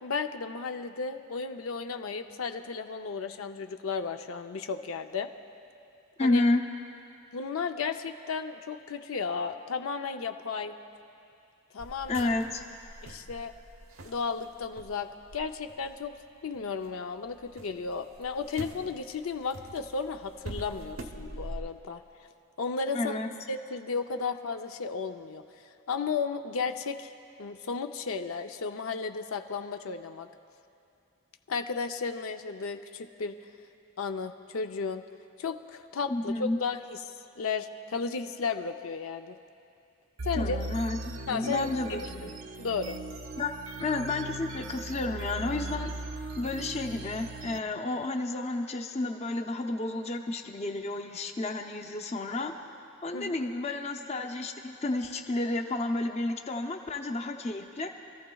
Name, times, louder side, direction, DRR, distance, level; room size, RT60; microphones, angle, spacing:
voice 1, 0.0-5.3 6.2-6.4 7.3-10.7 11.7-12.3 13.0-13.5 14.0-16.2 16.4-22.0 22.6-23.2 23.5-25.4 25.9-27.1 27.4-30.3 31.5-33.3 34.0-35.0 35.4-37.0 37.4-39.4 40.2-40.6 41.3-42.3 42.6-43.0 53.1-53.5, left 5 dB, 85° left, 7 dB, 0.5 m, -34 dB
voice 2, 6.2-6.6 12.1-12.6 22.9-23.3 36.1-36.6 40.4-42.3 43.4-43.5 43.8-45.9 46.4-52.5 53.0-57.9, left 2 dB, 30° left, 4 dB, 0.6 m, -31 dB
sound 1, 11.8-16.9 17.3-21.6, right 1 dB, 90° right, 0.9 m, -45 dB
sound 2, 40.2-47.6, right 2 dB, 70° right, 0.5 m, -38 dB
27.0 x 14.0 x 2.3 m, 2.5 s
head